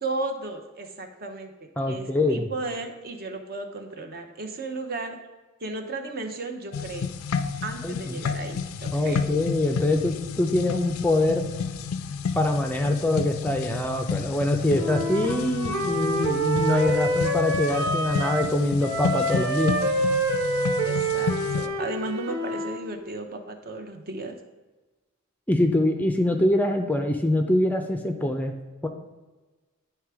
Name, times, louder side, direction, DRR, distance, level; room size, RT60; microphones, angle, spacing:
voice 1, 0.0-5.2 5.6-7.1 7.6-9.2 20.8-24.3, right 3 dB, 45° right, 5 dB, 0.8 m, -34 dB
voice 2, 1.8-2.5 7.8-8.2 8.9-11.5 12.3-19.8 25.5-28.5 28.8-28.9, left 1 dB, 10° left, 5 dB, 0.4 m, -24 dB
sound 1, 6.7-21.7, left 5 dB, 85° left, 0.4 m, -31 dB
Wind instrument woodwind instrument, 14.7-18.5 18.8-22.8, right 1 dB, 75° right, 1.3 m, -27 dB
9.7 x 3.4 x 4.7 m, 1.2 s
head